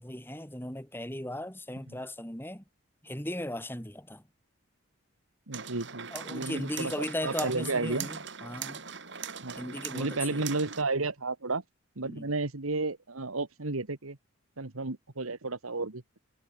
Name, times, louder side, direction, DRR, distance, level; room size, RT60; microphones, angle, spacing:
voice 1, 0.0-2.6 3.0-4.3 6.1-8.9 9.6-10.4 12.0-12.3, left 1 dB, 10° left, 3.7 m, -37 dB
sound 1, 5.5-10.8, right 7 dB, 55° right, 3.9 m, -41 dB
voice 2, 5.5-6.9 7.2-8.1 9.4-11.6 11.9-14.2 14.6-16.0, right 3 dB, 85° right, 1.8 m, -32 dB
head